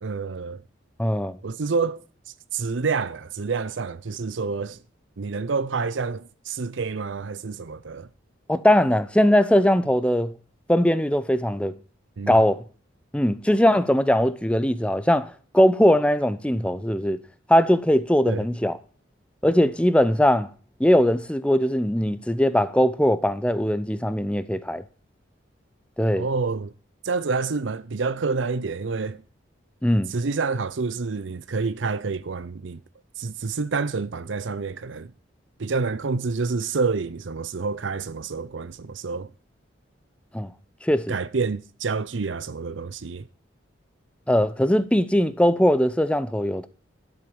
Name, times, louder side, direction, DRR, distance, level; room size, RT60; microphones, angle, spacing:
voice 1, 0.0-0.6 1.4-2.0 2.5-4.8 5.2-8.1 12.2-12.4 18.3-18.5 26.2-26.7 27.0-29.2 30.1-32.8 33.2-35.1 35.6-39.3 41.1-43.3, right 4 dB, 75° right, 0.6 m, -28 dB
voice 2, 1.0-1.4 8.5-10.3 10.7-11.7 12.3-12.6 13.1-17.2 17.5-18.8 19.4-20.5 20.8-24.8 26.0-26.3 29.8-30.1 40.3-40.5 40.8-41.1 44.3-46.7, equal, 5° left, 0.7 m, -20 dB
12.0 x 7.9 x 7.0 m
head